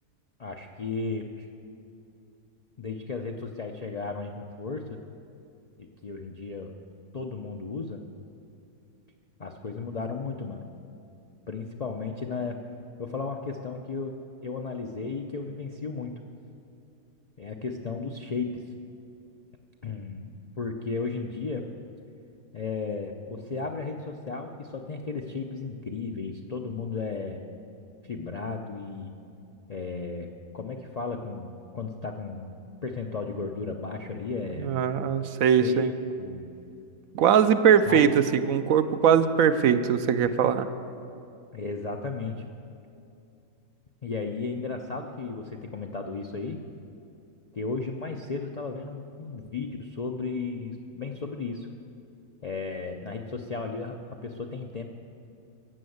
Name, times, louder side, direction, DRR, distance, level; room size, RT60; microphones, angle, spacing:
voice 1, 0.4-1.5 2.8-5.0 5.8-6.7 7.1-8.0 9.4-10.7 11.5-12.6 13.0-14.1 14.4-16.1 17.4-18.6 19.8-21.6 22.5-27.4 28.0-29.1 29.7-30.3 30.5-32.5 32.8-34.7 35.6-36.5 37.8-38.1 40.2-40.5 41.5-42.4 44.0-46.6 47.5-51.7 52.4-54.9, left 4 dB, 55° left, 3 dB, 0.4 m, -34 dB
voice 2, 34.6-35.9 37.1-40.7, right 8 dB, 75° right, 11 dB, 1.0 m, -21 dB
15.5 x 6.3 x 7.9 m, 2.6 s
omnidirectional pair, 1.5 m